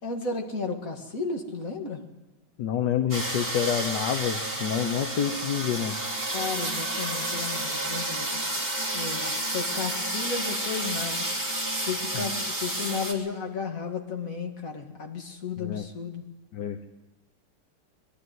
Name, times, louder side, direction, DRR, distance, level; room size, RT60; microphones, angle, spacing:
voice 1, 0.0-2.0 6.3-8.4 8.9-11.3 11.8-16.2, left 4 dB, 40° left, 3 dB, 2.3 m, -33 dB
voice 2, 2.6-5.9 12.1-12.2 15.6-15.8 16.5-16.8, left 9 dB, 60° left, 7 dB, 1.4 m, -28 dB
sound 1, 3.1-13.1, right 1 dB, 10° right, 2.7 m, -30 dB
22.5 x 12.5 x 9.5 m, 1.1 s
omnidirectional pair, 2.4 m